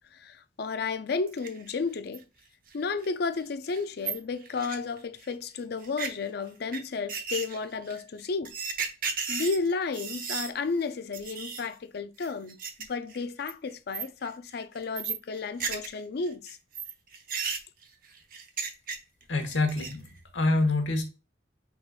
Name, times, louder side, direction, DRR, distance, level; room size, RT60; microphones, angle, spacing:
voice 1, 0.1-2.2 2.7-8.5 9.3-12.6 12.9-16.6, left 4 dB, 60° left, 0.4 m, -32 dB
sound 1, 1.3-1.7 2.1-2.2 2.7-2.8 3.0-3.1 3.4-3.5 3.7-5.3 5.8-6.1 6.7-6.8 7.1-10.5 10.8-10.9 11.1-11.7 12.2-12.8 13.1-13.5 13.9-14.3 14.6-16.0 16.3-19.2 19.5-20.1, right 6 dB, 50° right, 0.7 m, -34 dB
voice 2, 19.3-21.0, left 2 dB, 90° left, 1.1 m, -26 dB
5.0 x 3.8 x 2.3 m
head